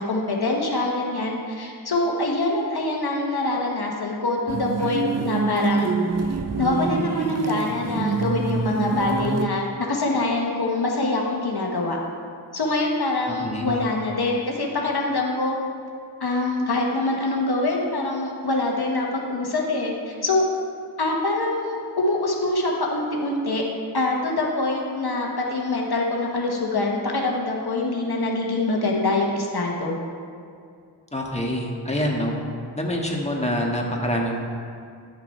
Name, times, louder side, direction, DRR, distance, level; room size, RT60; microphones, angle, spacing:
voice 1, 0.0-5.9 6.6-12.0 12.5-15.6 16.2-20.5 21.0-23.6 23.9-30.0, left 2 dB, 60° left, -1 dB, 1.3 m, -24 dB
sound 1, 4.5-9.5, right 4 dB, 40° right, 0.6 m, -25 dB
voice 2, 13.3-13.8 31.1-32.4 32.7-34.4, equal, 15° left, -1 dB, 1.5 m, -26 dB
11.0 x 5.9 x 4.4 m, 2.3 s
cardioid pair, 50°, 43 cm